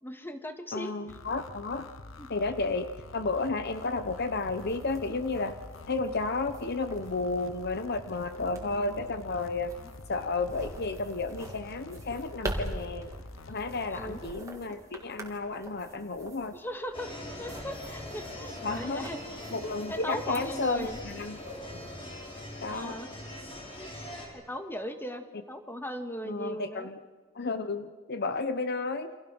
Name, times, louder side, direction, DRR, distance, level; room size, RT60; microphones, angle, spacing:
voice 1, 0.0-0.9 2.2-2.3 9.8-9.9 13.9-14.2 16.5-17.1 17.4-19.6 19.9-21.0 22.7-23.1 23.8-23.9 24.3-26.9, equal, 10° left, 6 dB, 2.0 m, -38 dB
voice 2, 0.7-1.9 2.3-5.6 5.9-9.7 10.1-13.1 13.5-16.6 18.6-19.1 19.5-21.4 21.7-21.9 22.6-23.0 26.2-27.0 27.3-29.1, left 3 dB, 55° left, 10 dB, 1.0 m, -32 dB
sound 1, 1.1-14.3, left 2 dB, 90° left, 1.2 m, -47 dB
sound 2, 3.8-22.9, right 1 dB, 15° right, 3.1 m, -45 dB
sound 3, 16.9-24.3, left 1 dB, 25° left, 5.6 m, -42 dB
29.5 x 26.0 x 6.3 m, 1.4 s
head